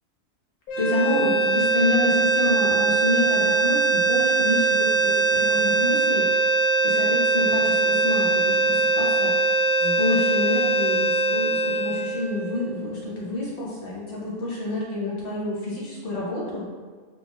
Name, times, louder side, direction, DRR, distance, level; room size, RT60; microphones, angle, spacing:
sound 1, 0.7-12.9, right 3 dB, 85° left, 1.1 m, -22 dB
voice 1, 0.8-6.3 6.8-9.3 9.8-16.6, left 2 dB, 45° left, -6 dB, 1.2 m, -28 dB
4.9 x 3.3 x 2.3 m, 1.5 s
omnidirectional pair, 1.5 m